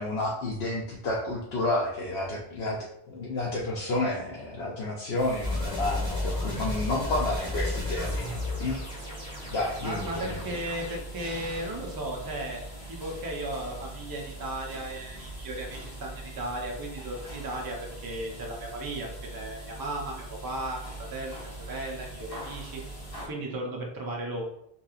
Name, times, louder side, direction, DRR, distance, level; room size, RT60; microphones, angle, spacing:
voice 1, 0.0-2.8 3.1-8.8 9.5-10.4, left 2 dB, 80° left, -4 dB, 0.8 m, -30 dB
sound 1, 5.2-23.3, right 2 dB, 40° left, 1.1 m, -41 dB
sound 2, 5.4-11.0, left 2 dB, 5° right, 1.1 m, -33 dB
voice 2, 9.8-12.6 12.9-20.8 21.1-22.8 23.2-24.4, right 1 dB, 30° right, 0 dB, 0.4 m, -35 dB
3.0 x 2.8 x 2.3 m, 0.77 s
omnidirectional pair, 1.1 m